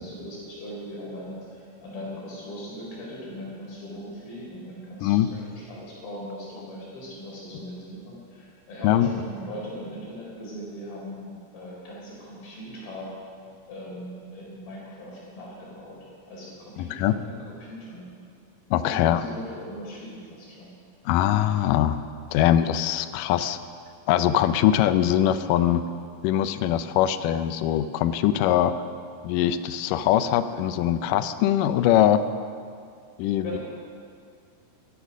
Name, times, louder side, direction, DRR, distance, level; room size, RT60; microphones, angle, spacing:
voice 1, 0.0-13.1 13.7-18.0 18.9-20.7 33.4-33.6, equal, 65° left, -4 dB, 5.8 m, -39 dB
voice 2, 16.8-17.2 18.7-19.2 21.1-22.0 22.3-23.6 24.1-25.8 26.2-28.8 29.2-32.2 33.2-33.6, left 11 dB, 90° left, 11 dB, 1.9 m, -22 dB
15.0 x 13.5 x 6.2 m, 2.2 s
omnidirectional pair, 4.5 m